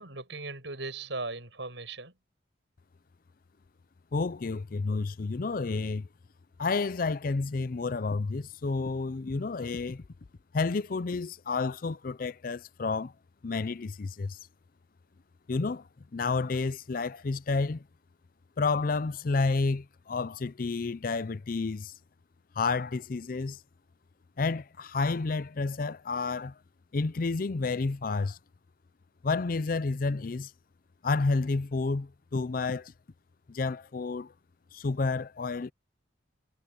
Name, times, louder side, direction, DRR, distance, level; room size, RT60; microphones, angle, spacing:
voice 1, 0.0-2.1, right 3 dB, 75° right, 7.3 m, -38 dB
voice 2, 4.1-6.1 6.6-10.0 10.5-13.1 13.4-14.4 15.5-17.8 18.6-21.9 22.6-23.6 24.4-26.5 26.9-28.4 29.2-30.5 31.0-32.9 33.5-34.3 34.7-35.7, left 3 dB, 50° left, 0.5 m, -30 dB
head